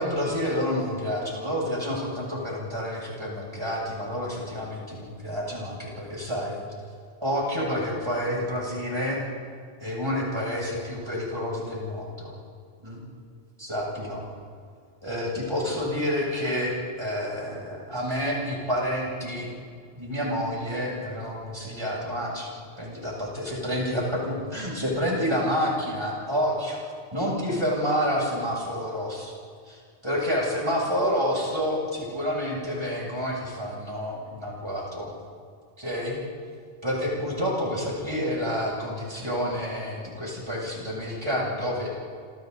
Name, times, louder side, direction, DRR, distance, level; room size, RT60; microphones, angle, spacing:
voice 1, 0.0-6.6 7.2-9.2 9.8-12.3 12.8-13.1 13.6-14.3 15.0-19.5 19.9-22.5 22.8-26.8 27.1-29.3 29.7-35.1 35.8-36.2 36.8-41.9, equal, 25° right, -4 dB, 7.9 m, -29 dB
29.0 x 27.5 x 4.2 m, 2.1 s
omnidirectional pair, 1.1 m